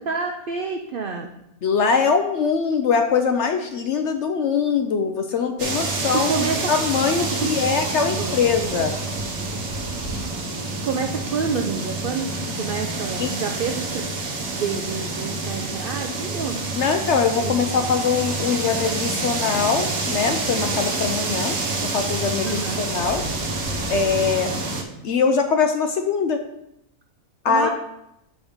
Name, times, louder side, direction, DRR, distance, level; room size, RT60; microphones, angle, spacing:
voice 1, 0.0-1.3 6.1-6.7 7.4-7.5 7.9-8.4 10.8-12.3 12.6-14.0 14.4-16.6 17.4-17.6 22.4-22.8 27.5-27.7, right 5 dB, 90° right, 3 dB, 0.4 m, -28 dB
voice 2, 1.6-6.3 6.7-8.9 13.2-13.3 16.7-21.6 21.9-23.2 23.9-24.5 25.0-26.4 27.4-27.7, left 5 dB, 65° left, 6 dB, 0.7 m, -22 dB
sound 1, 5.6-24.8, right 3 dB, 55° right, 1.1 m, -27 dB
7.1 x 6.1 x 3.6 m, 0.82 s
omnidirectional pair, 1.6 m